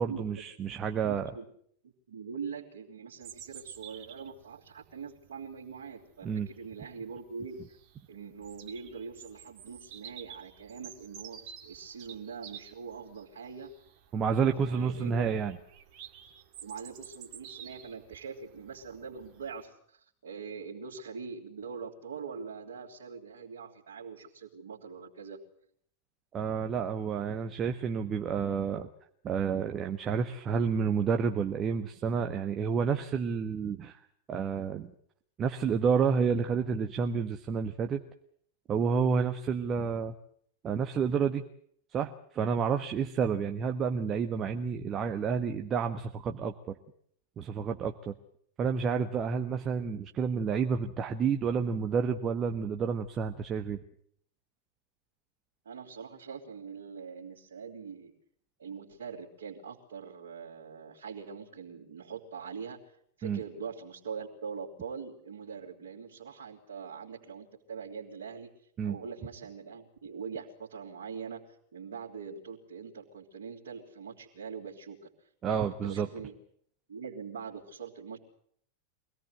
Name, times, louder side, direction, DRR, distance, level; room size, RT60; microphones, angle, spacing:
voice 1, 0.0-1.3 6.2-6.5 14.1-15.6 26.3-28.9 29.2-34.0 34.3-34.9 35.4-38.0 38.7-40.1 40.6-41.4 41.9-46.8 47.4-48.1 48.6-53.8 63.2-63.4 68.8-68.9 75.4-76.1, right 6 dB, 25° right, 6 dB, 1.2 m, -30 dB
voice 2, 1.0-1.4 1.8-7.6 8.1-13.7 14.3-15.4 16.6-25.4 55.6-58.1 58.6-62.8 63.2-68.5 68.8-76.3 76.9-78.2, right 6 dB, 65° right, -7 dB, 3.3 m, -43 dB
Bird vocalization bird call bird song, 3.2-19.6, right 9 dB, 45° right, 2.1 m, -51 dB
24.5 x 17.5 x 8.0 m, 0.66 s
figure-of-eight pair, 90°, 0 cm